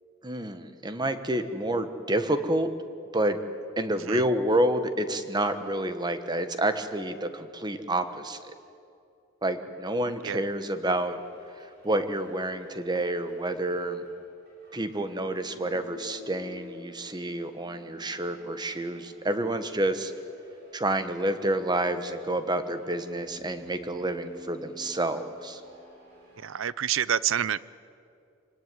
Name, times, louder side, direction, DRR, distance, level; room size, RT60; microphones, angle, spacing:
voice 1, 0.2-2.7 3.1-3.4 3.8-8.5 9.4-11.2 11.6-14.0 14.7-20.1 20.7-25.6, right 1 dB, 20° right, 9 dB, 1.3 m, -29 dB
sound 1, 10.7-26.5, left 2 dB, 50° right, 7.7 m, -51 dB
voice 2, 26.4-27.6, right 9 dB, 65° right, 19 dB, 0.6 m, -27 dB
26.0 x 18.5 x 9.7 m, 2.5 s
head